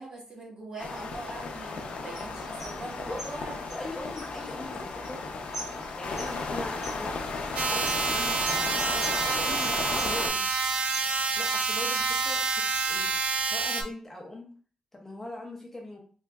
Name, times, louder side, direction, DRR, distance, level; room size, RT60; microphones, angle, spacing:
voice 1, 0.0-3.6, right 2 dB, 40° right, -4 dB, 1.3 m, -41 dB
sound 1, 0.8-10.3, left 3 dB, 80° left, 0.5 m, -35 dB
sound 2, 2.1-13.6, right 2 dB, 20° right, 1.3 m, -46 dB
voice 2, 3.1-5.2 6.0-10.4 11.4-13.1 13.4-14.5 14.9-16.0, left 2 dB, 15° left, 0 dB, 0.5 m, -41 dB
sound 3, 7.6-13.8, right 4 dB, 80° right, 0.4 m, -28 dB
3.6 x 3.0 x 2.3 m, 0.41 s
wide cardioid pair, 160°, 2 cm